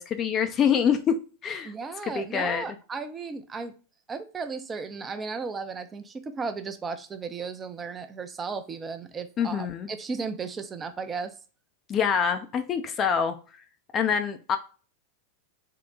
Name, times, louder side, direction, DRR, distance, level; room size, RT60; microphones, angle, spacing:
voice 1, 0.0-1.7 2.1-2.6 9.4-9.9 11.9-13.4 13.9-14.6, left 7 dB, 35° left, 0.5 m, -25 dB
voice 2, 1.6-3.7 4.1-11.3, right 4 dB, 20° right, 0.6 m, -35 dB
3.8 x 2.1 x 3.7 m
hypercardioid pair, 100°, 0 cm